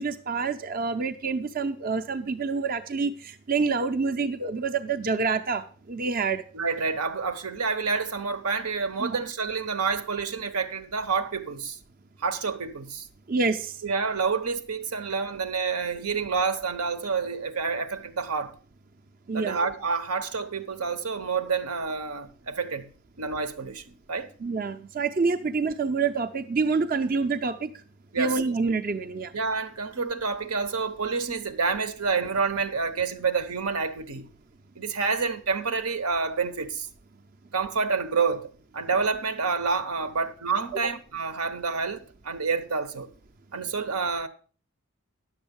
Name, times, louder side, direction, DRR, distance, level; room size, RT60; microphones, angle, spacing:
voice 1, 0.0-5.6 5.9-6.4 9.0-9.2 13.3-13.7 19.3-19.6 24.4-27.7 28.2-29.3, right 4 dB, 40° right, 0.6 m, -27 dB
voice 2, 6.5-11.8 12.2-13.1 13.8-18.5 19.3-22.9 23.2-24.3 28.1-28.5 29.3-34.3 34.8-36.9 37.5-43.1 43.5-44.3, right 5 dB, 85° right, 1.0 m, -28 dB
10.5 x 7.1 x 5.3 m
head